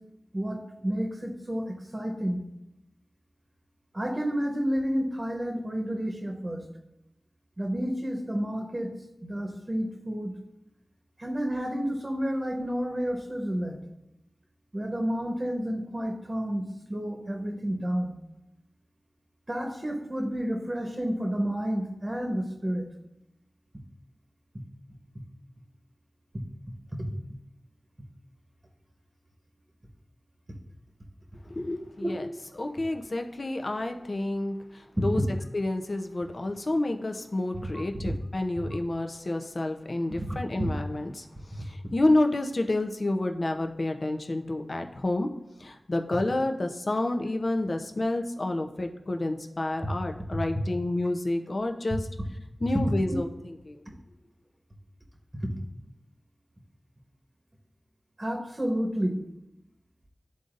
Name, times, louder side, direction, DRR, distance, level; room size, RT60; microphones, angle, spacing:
voice 1, 0.3-2.5 3.9-6.7 7.6-8.9 9.2-10.3 11.2-13.8 14.7-16.6 16.9-18.1 19.5-22.9 27.1-27.2 32.0-32.1 35.0-35.1 37.7-37.8 40.2-40.3 40.6-40.7 53.1-53.2 55.4-55.6 58.2-59.2, equal, 35° right, 1 dB, 1.0 m, -30 dB
voice 2, 31.5-32.3 32.6-35.2 35.5-45.3 45.6-52.1 52.6-53.8, left 2 dB, 55° left, 5 dB, 0.7 m, -29 dB
11.5 x 3.9 x 2.6 m, 0.88 s
wide cardioid pair, 50°, 0 cm